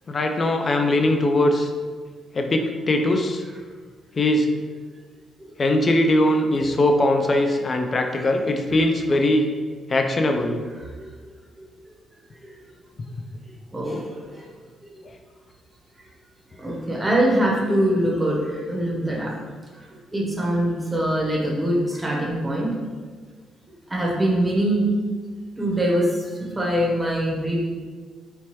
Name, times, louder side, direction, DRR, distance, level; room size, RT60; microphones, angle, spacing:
voice 1, 0.1-1.7 2.3-3.4 4.2-4.5 5.6-9.5 9.9-10.6, left 1 dB, 35° left, 4 dB, 0.3 m, -20 dB
voice 2, 13.7-14.4 16.6-19.3 20.1-22.7 23.9-24.9 25.6-27.6, right 1 dB, 15° right, -3 dB, 0.7 m, -23 dB
2.8 x 2.2 x 3.0 m, 1.5 s
cardioid pair, 90°, 0 cm